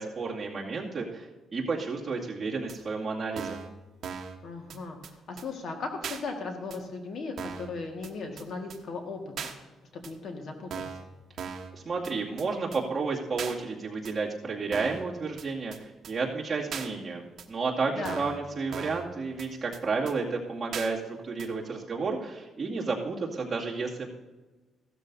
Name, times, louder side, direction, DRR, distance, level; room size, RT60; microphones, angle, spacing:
voice 1, 0.0-3.6 11.7-24.1, right 4 dB, 25° right, -5 dB, 2.3 m, -32 dB
sound 1, 2.7-2.8 3.4-3.7 4.0-4.4 4.7-4.8 5.0-5.1 5.4-5.5 6.0-6.2 6.7-6.8 7.4-7.7 8.0-8.1 8.4-8.5 8.7-8.8 9.4-9.5 10.0-10.1 10.7-11.0 11.4-11.7 12.0-12.1 12.4-12.5 12.7-12.8 13.4-13.5 14.0-14.1 14.7-15.0 15.4-15.5 15.7-15.8 16.0-16.1 16.7-16.9 17.4-17.5 18.0-18.4 18.7-19.0 19.4-19.5 19.7-19.8 20.1-20.2 20.7-20.9 21.4-21.5, right 7 dB, 55° right, 1.1 m, -38 dB
voice 2, 4.4-9.5 10.0-10.8 18.0-18.3, left 3 dB, 50° left, 3 dB, 1.7 m, -37 dB
15.5 x 13.0 x 2.7 m, 1.2 s
cardioid pair, 135°, 0 cm